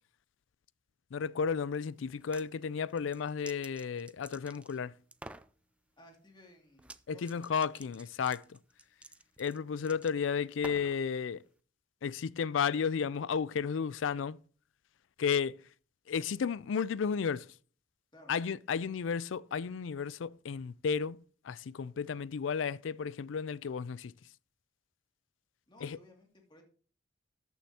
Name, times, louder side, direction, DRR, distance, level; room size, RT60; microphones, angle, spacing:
voice 1, 1.1-4.9 7.1-8.6 9.4-11.4 12.0-14.4 15.2-15.6 16.1-17.5 18.3-21.2 21.4-24.1 25.8-26.0, left 6 dB, 85° left, 0.4 m, -33 dB
sound 1, 2.1-2.5 2.9-4.8 5.1-5.5 6.8-7.0 7.3-11.0, right 2 dB, 5° right, 0.4 m, -50 dB
voice 2, 6.0-7.4 18.1-18.3 25.7-26.6, left 1 dB, 25° left, 2.5 m, -58 dB
13.0 x 9.3 x 2.9 m
head